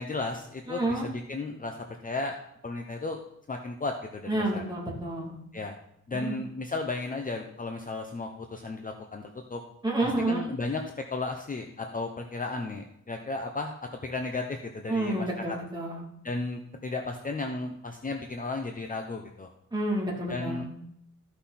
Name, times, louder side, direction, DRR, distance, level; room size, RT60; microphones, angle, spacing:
voice 1, 0.0-1.8 2.0-2.4 2.6-3.2 3.5-4.6 5.5-5.7 6.1-9.6 10.0-10.8 11.1-13.7 14.0-15.6 16.2-19.5 20.3-20.6, left 3 dB, 30° left, 3 dB, 0.7 m, -34 dB
voice 2, 0.7-1.1 4.3-5.3 6.1-6.4 9.8-10.5 14.9-16.0 19.7-20.7, right 1 dB, 15° right, -4 dB, 2.7 m, -29 dB
14.0 x 5.9 x 4.2 m, 0.73 s
wide cardioid pair, 165°, 30 cm